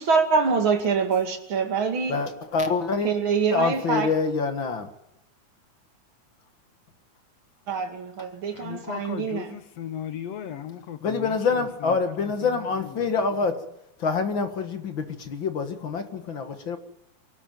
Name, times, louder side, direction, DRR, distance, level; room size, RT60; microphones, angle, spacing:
voice 1, 0.0-2.2 3.0-4.1 7.7-9.5, right 5 dB, 45° right, 2.8 m, -25 dB
voice 2, 2.1-3.1 3.5-4.9 11.0-13.6 14.0-16.8, left 4 dB, 45° left, 2.0 m, -26 dB
voice 3, 8.5-13.1, left 9 dB, 65° left, 2.0 m, -37 dB
23.0 x 13.0 x 9.3 m
omnidirectional pair, 3.5 m